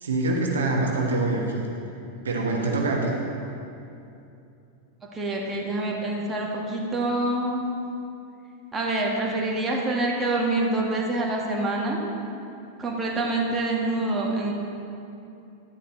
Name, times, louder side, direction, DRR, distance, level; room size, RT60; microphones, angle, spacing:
voice 1, 0.0-1.7 2.2-3.1, right 2 dB, 65° right, -1 dB, 1.3 m, -25 dB
voice 2, 5.1-7.6 8.7-12.0 12.8-14.5, right 2 dB, 15° right, -2 dB, 1.5 m, -26 dB
12.5 x 9.8 x 3.1 m, 2.7 s
figure-of-eight pair, 90°, 0 cm